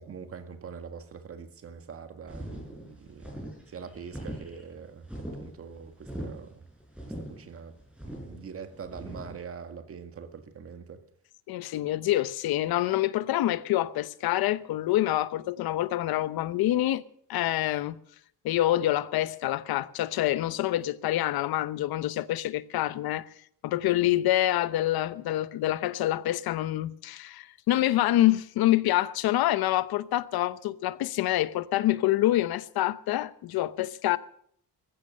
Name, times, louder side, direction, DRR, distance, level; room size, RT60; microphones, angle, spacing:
voice 1, 0.0-6.6 7.2-7.8 8.0-11.0, right 6 dB, 40° right, 1.9 m, -43 dB
sound 1, 2.3-9.3, right 1 dB, 5° right, 6.6 m, -41 dB
voice 2, 11.5-17.0 17.3-18.0 18.4-23.3 23.6-34.2, left 14 dB, 80° left, 0.9 m, -26 dB
15.0 x 14.5 x 6.4 m
cardioid pair, 155°, 36 cm